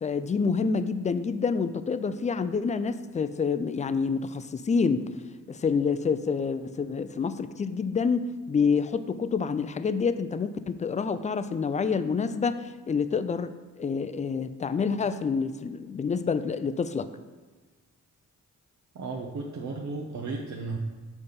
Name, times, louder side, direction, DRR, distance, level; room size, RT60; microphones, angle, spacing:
voice 1, 0.0-5.1 5.5-17.1, left 5 dB, 25° left, 12 dB, 0.4 m, -27 dB
voice 2, 18.9-20.8, right 3 dB, 65° right, -1 dB, 0.8 m, -34 dB
7.1 x 4.1 x 5.1 m, 1.4 s
cardioid pair, 90°, 31 cm